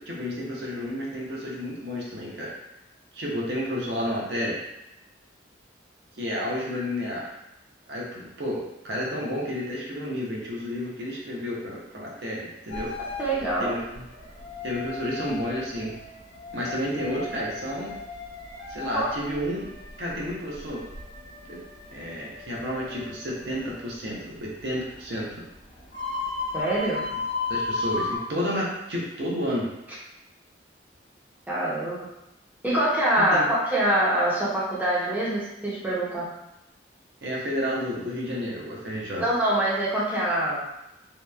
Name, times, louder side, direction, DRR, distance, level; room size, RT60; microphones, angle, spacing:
voice 1, 0.0-2.5 3.1-4.6 6.2-7.4 7.9-12.9 13.6-14.0 14.6-15.9 16.5-18.0 18.7-19.7 20.0-20.9 21.5-21.6 21.9-25.3 27.5-29.7 33.2-33.5 37.2-39.2, equal, 65° right, -4 dB, 0.6 m, -31 dB
sound 1, 12.7-28.2, left 3 dB, 85° left, 0.8 m, -36 dB
voice 2, 13.0-13.8 18.9-19.1 26.5-27.0 31.5-32.1 32.6-36.3 39.2-40.6, right 1 dB, 10° right, -8 dB, 0.5 m, -24 dB
2.7 x 2.0 x 2.3 m, 0.87 s
head